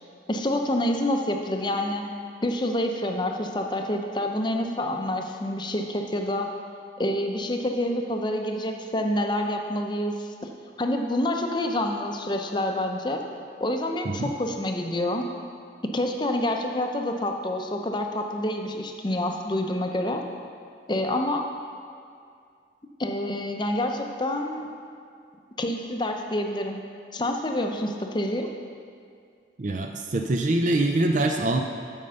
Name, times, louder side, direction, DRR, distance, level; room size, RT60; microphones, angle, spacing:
voice 1, 0.3-2.1 2.4-6.5 7.0-10.5 10.8-13.2 13.6-15.2 15.9-20.2 20.9-21.5 23.0-24.7 25.6-26.8 27.1-28.5, left 1 dB, 25° left, 3 dB, 0.6 m, -27 dB
voice 2, 29.6-31.6, right 2 dB, 45° right, 4 dB, 0.4 m, -24 dB
8.5 x 5.3 x 6.8 m, 2.3 s
head